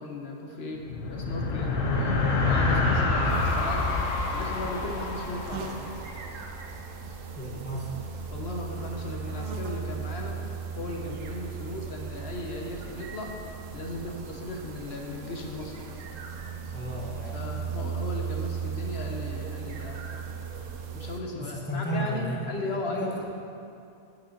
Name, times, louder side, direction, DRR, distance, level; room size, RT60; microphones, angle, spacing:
voice 1, 0.0-5.9 8.3-10.4 10.7-13.3 13.7-15.8 17.3-20.1 20.9-23.2, left 2 dB, 55° left, 1 dB, 0.9 m, -37 dB
sound 1, 0.7-6.5, left 3 dB, 70° left, 1.2 m, -27 dB
sound 2, 3.3-21.2, right 6 dB, 70° right, 1.0 m, -37 dB
voice 2, 7.4-8.0 16.7-17.7 21.4-23.2, right 1 dB, 10° left, -5 dB, 1.0 m, -34 dB
9.3 x 8.8 x 2.8 m, 2.6 s
omnidirectional pair, 1.5 m